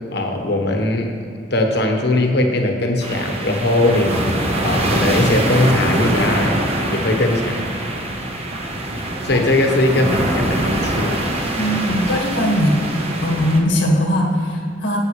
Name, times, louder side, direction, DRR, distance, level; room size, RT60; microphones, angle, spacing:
voice 1, 0.1-1.1 1.5-4.1 4.6-6.6 6.9-7.6 9.2-11.2, left 2 dB, 65° left, 3 dB, 1.2 m, -19 dB
sound 1, 3.0-13.6, right 1 dB, 35° right, 1.1 m, -23 dB
voice 2, 11.6-12.8 13.2-15.0, equal, 90° left, 0 dB, 1.7 m, -19 dB
11.5 x 8.6 x 3.2 m, 2.4 s
head